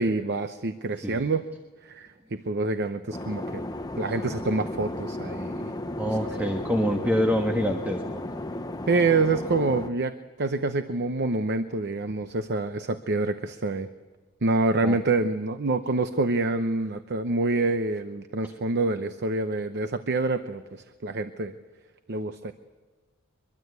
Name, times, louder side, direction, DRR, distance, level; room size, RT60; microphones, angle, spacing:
voice 1, 0.0-1.5 1.8-3.6 4.0-5.8 6.0-6.5 8.9-13.9 14.4-21.5 22.1-22.5, right 3 dB, 50° right, 9 dB, 0.8 m, -27 dB
sound 1, 3.1-9.9, left 1 dB, 15° left, 0.8 m, -34 dB
voice 2, 6.0-8.0 14.8-15.0, equal, 10° right, 3 dB, 1.5 m, -25 dB
23.5 x 22.5 x 8.2 m, 1.4 s
head